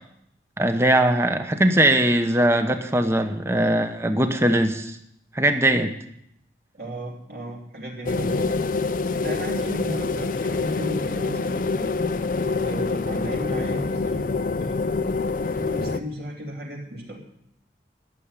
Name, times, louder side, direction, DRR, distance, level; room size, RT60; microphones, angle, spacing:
voice 1, 0.6-5.0 5.3-5.9, right 1 dB, 15° right, 7 dB, 0.9 m, -20 dB
voice 2, 6.7-8.5 9.2-12.0 12.6-14.3 14.6-14.9 15.4-17.2, equal, 60° right, -2 dB, 3.1 m, -35 dB
sound 1, 8.1-16.0, left 3 dB, 50° left, 0.5 m, -26 dB
12.0 x 7.0 x 9.7 m, 0.77 s
head